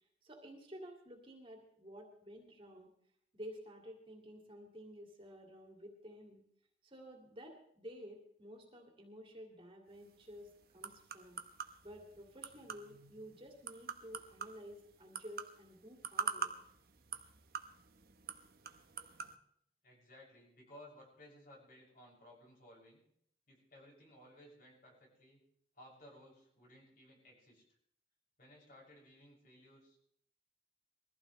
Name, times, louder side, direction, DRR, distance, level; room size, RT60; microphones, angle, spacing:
voice 1, 0.2-2.9 3.3-6.4 6.8-11.4 11.8-16.5, equal, 30° right, 1 dB, 2.4 m, -52 dB
sound 1, 9.9-19.4, right 5 dB, 60° right, 1.0 m, -46 dB
voice 2, 19.8-23.0 23.5-25.4 25.7-27.6 28.4-30.0, left 1 dB, 55° left, -2 dB, 6.8 m, -59 dB
22.5 x 15.0 x 3.3 m, 0.68 s
head